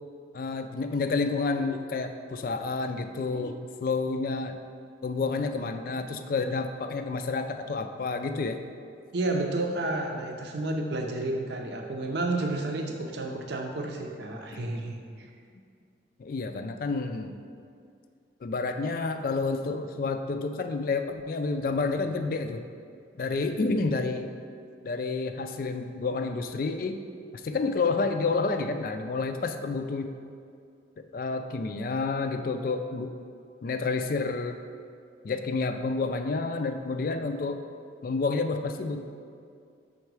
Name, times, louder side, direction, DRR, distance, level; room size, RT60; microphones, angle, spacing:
voice 1, 0.3-4.6 5.0-8.6 14.5-14.6 16.2-17.3 18.4-22.6 23.1-24.3 24.8-27.0 27.3-30.1 31.0-33.2 33.6-34.6 35.2-37.7 38.0-39.0, left 3 dB, 50° left, 7 dB, 0.3 m, -29 dB
voice 2, 9.1-15.3, right 2 dB, 65° right, 3 dB, 0.6 m, -31 dB
5.5 x 3.9 x 4.7 m, 2.3 s
head